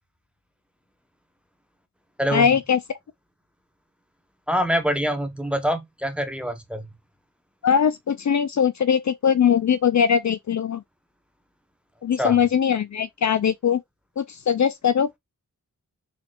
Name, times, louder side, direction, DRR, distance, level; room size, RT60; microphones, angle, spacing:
voice 1, 2.3-3.0 7.6-10.8 12.0-13.8 14.2-15.1, left 7 dB, 55° left, 0.4 m, -21 dB
voice 2, 4.5-6.9 12.2-12.4, equal, 5° right, 0.9 m, -25 dB
4.3 x 2.8 x 2.4 m
wide cardioid pair, 75°, 34 cm